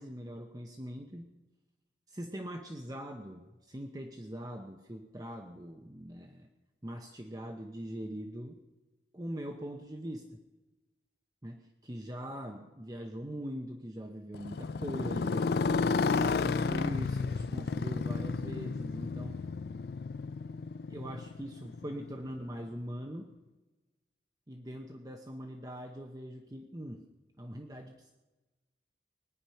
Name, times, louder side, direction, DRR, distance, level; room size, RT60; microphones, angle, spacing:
voice 1, 0.0-1.3 2.1-6.5 6.8-8.6 9.1-10.4 11.4-15.5 16.0-19.4 20.9-23.3 24.5-27.0 27.4-28.1, equal, 20° right, 3 dB, 0.9 m, -42 dB
Motorcycle, 14.3-22.4, left 4 dB, 60° left, 0.4 m, -32 dB
21.5 x 10.0 x 5.7 m, 1.1 s
head